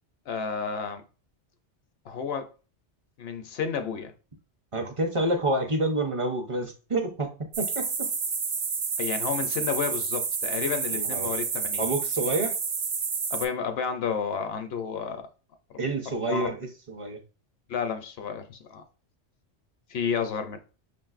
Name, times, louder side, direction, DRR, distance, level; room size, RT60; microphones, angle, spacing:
voice 1, 0.3-1.0 2.1-2.5 3.2-4.1 9.0-11.9 13.3-15.2 15.7-15.8 16.3-16.5 17.7-18.8 19.9-20.6, left 6 dB, 65° left, 0.8 m, -31 dB
voice 2, 4.7-7.3 7.6-8.1 10.9-11.3 11.8-12.5 15.8-17.2, right 2 dB, 35° right, 0.5 m, -28 dB
sound 1, 7.5-13.5, right 5 dB, 70° right, 0.9 m, -29 dB
5.9 x 2.6 x 2.4 m
omnidirectional pair, 1.2 m